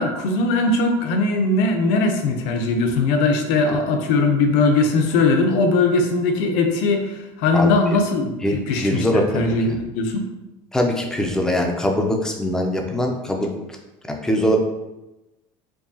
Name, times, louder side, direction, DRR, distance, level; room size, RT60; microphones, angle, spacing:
voice 1, 0.0-10.2, left 3 dB, 75° left, 4 dB, 0.6 m, -20 dB
voice 2, 8.4-9.5 10.7-13.5 14.1-14.6, equal, 5° left, 2 dB, 0.4 m, -22 dB
4.6 x 2.7 x 2.7 m, 0.99 s
cardioid pair, 160°, 12 cm